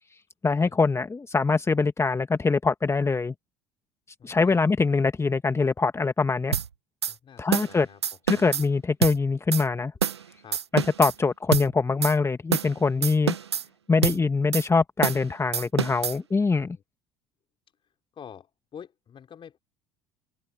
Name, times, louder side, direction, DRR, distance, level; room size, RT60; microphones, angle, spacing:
voice 1, 0.4-3.3 4.2-6.5 7.4-7.9 8.3-9.9 10.7-13.3 13.9-16.8, left 4 dB, 20° left, 1.4 m, -23 dB
voice 2, 4.2-4.6 7.1-8.0 8.3-8.5 10.4-10.6 16.6-16.8 18.1-19.6, left 8 dB, 40° left, 4.1 m, -47 dB
sound 1, 6.5-6.7 7.0-7.1 7.5-7.7 8.0-8.6 9.0-9.2 9.5-9.6 10.0-10.2 10.5-11.1 11.5-11.7 12.0-12.1 12.5-12.7 13.0-13.6 14.0-14.2 14.5-14.7 15.0-15.2 15.5-16.2, right 8 dB, 90° right, 0.9 m, -26 dB
hypercardioid pair, 65°, 14 cm